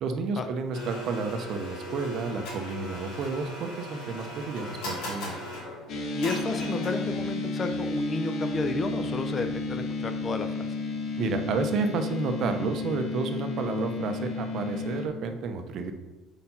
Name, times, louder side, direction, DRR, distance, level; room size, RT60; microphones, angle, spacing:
voice 1, 0.0-5.3 11.2-15.9, right 4 dB, 50° right, 6 dB, 0.7 m, -31 dB
Domestic sounds home sounds, 0.7-7.2, equal, 90° left, 2.2 m, -38 dB
sound 1, 5.9-15.1, left 3 dB, 50° left, 1.0 m, -32 dB
voice 2, 6.1-10.7, left 3 dB, 25° left, 8 dB, 0.5 m, -32 dB
4.9 x 4.4 x 5.6 m, 1.1 s
cardioid pair, 150°, 0 cm